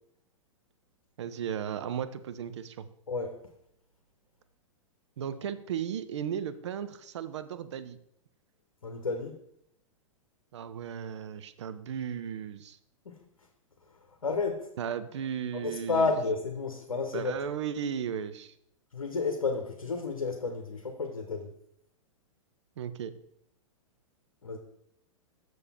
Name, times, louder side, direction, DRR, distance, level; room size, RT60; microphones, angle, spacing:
voice 1, 1.2-2.9 5.2-8.0 10.5-12.8 14.8-16.1 17.1-18.5 22.8-23.1, right 8 dB, 55° right, 12 dB, 0.6 m, -35 dB
voice 2, 8.8-9.4 13.0-13.2 14.2-14.7 15.5-17.3 18.9-21.5 24.4-24.6, left 4 dB, 75° left, 4 dB, 0.9 m, -31 dB
6.8 x 6.4 x 4.3 m, 0.73 s
figure-of-eight pair, 100°, 17 cm